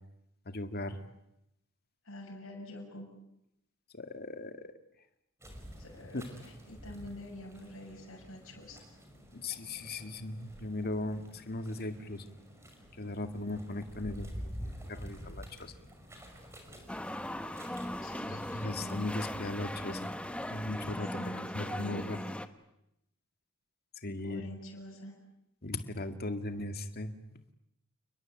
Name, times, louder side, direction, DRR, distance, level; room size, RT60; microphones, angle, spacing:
voice 1, 0.5-1.0 3.9-4.7 6.1-6.4 9.3-12.2 13.0-15.7 18.3-20.1 20.5-22.2 24.0-24.4 25.6-27.1, left 2 dB, 50° left, 7 dB, 2.1 m, -38 dB
voice 2, 2.0-3.1 5.8-8.9 18.0-18.9 21.1-22.0 24.2-25.2, left 1 dB, 70° left, -1 dB, 7.0 m, -47 dB
sound 1, 5.4-20.9, equal, 15° right, 5.9 m, -49 dB
sound 2, 16.9-22.5, left 1 dB, 5° left, 1.2 m, -39 dB
29.5 x 21.0 x 8.9 m, 0.81 s
head